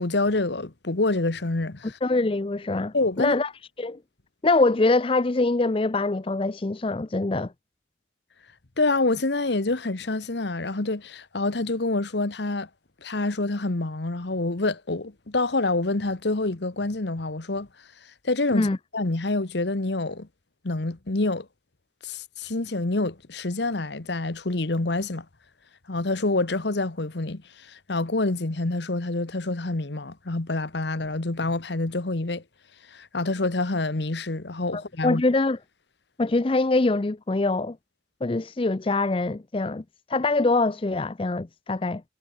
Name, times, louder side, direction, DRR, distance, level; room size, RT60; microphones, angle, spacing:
voice 1, 0.0-2.0 2.9-3.3 8.8-12.7 13.0-17.7 18.2-20.3 20.6-21.5 22.0-25.2 25.9-27.4 27.7-32.4 32.9-35.2, left 2 dB, 65° left, 1.2 m, -27 dB
voice 2, 2.0-3.5 3.8-4.0 4.4-7.5 18.5-18.8 34.7-35.6 36.2-37.8 38.2-39.8 40.1-42.0, left 2 dB, 30° left, 0.5 m, -24 dB
head